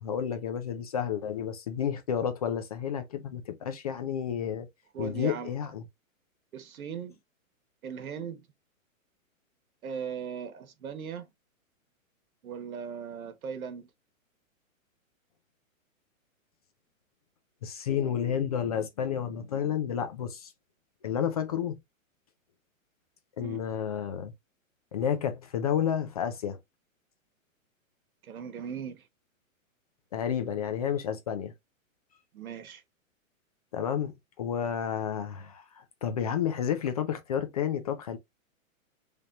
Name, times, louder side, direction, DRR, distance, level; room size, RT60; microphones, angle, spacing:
voice 1, 0.0-4.7 5.0-5.8 17.6-20.5 21.0-21.8 23.4-24.3 24.9-26.6 30.1-31.5 33.7-38.2, left 8 dB, 30° left, 0.4 m, -31 dB
voice 2, 4.9-5.5 6.5-7.2 7.8-8.4 9.8-11.3 12.4-13.9 23.4-23.6 28.2-29.0 32.3-32.8, right 7 dB, 85° right, 1.2 m, -38 dB
4.2 x 3.4 x 2.4 m
hypercardioid pair, 150°, 41 cm